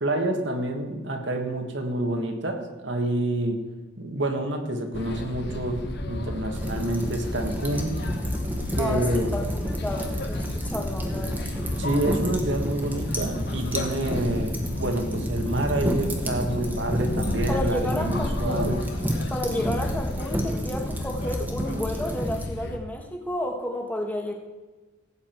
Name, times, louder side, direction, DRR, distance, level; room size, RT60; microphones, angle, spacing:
voice 1, 0.0-3.6 4.0-8.0 8.8-9.5 11.8-18.8, right 1 dB, 60° right, 4 dB, 1.6 m, -28 dB
sound 1, 4.9-22.8, left 1 dB, 55° left, 1.1 m, -32 dB
sound 2, 6.5-22.4, equal, 10° right, 1.5 m, -32 dB
voice 2, 8.8-11.4 17.5-18.8 19.3-24.3, left 1 dB, 10° left, 2 dB, 1.4 m, -31 dB
17.0 x 8.5 x 4.5 m, 1.3 s
head